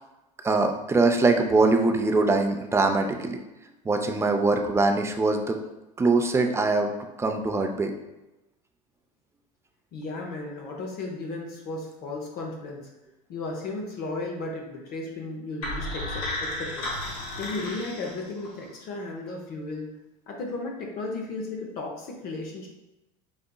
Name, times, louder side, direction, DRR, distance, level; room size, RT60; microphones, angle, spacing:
voice 1, 0.4-3.4 3.9-5.6 6.0-6.9 7.2-7.9, right 3 dB, 15° right, 4 dB, 0.4 m, -22 dB
voice 2, 9.9-12.9 13.3-16.9 17.4-19.9 20.3-22.7, left 2 dB, 55° left, 0 dB, 0.7 m, -35 dB
sound 1, 15.6-18.6, left 1 dB, 90° left, 1.1 m, -33 dB
4.9 x 2.8 x 2.2 m, 0.99 s
supercardioid pair, 95°, 18 cm